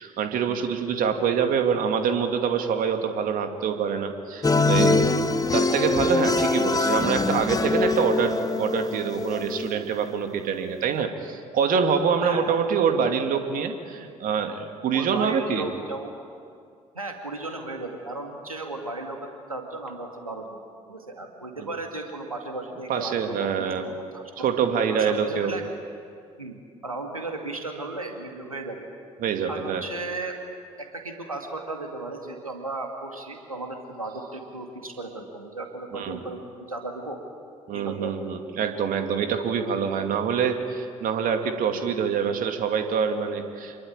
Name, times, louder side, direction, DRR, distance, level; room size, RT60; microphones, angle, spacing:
voice 1, 0.0-5.0 5.5-15.7 21.6-21.7 22.9-23.9 24.4-25.6 29.2-29.8 35.9-36.2 37.7-43.8, right 6 dB, 55° right, 6 dB, 2.5 m, -25 dB
sound 1, 4.4-9.7, left 3 dB, 20° left, 1.7 m, -23 dB
voice 2, 12.2-12.6 14.9-16.1 16.9-20.6 20.9-24.3 24.9-25.6 26.4-26.6 26.8-28.9 29.5-30.4 30.8-36.4 36.7-37.2 37.7-38.1, right 2 dB, 90° right, 3 dB, 2.4 m, -35 dB
26.5 x 23.0 x 8.9 m, 2.3 s
figure-of-eight pair, 50°, 17 cm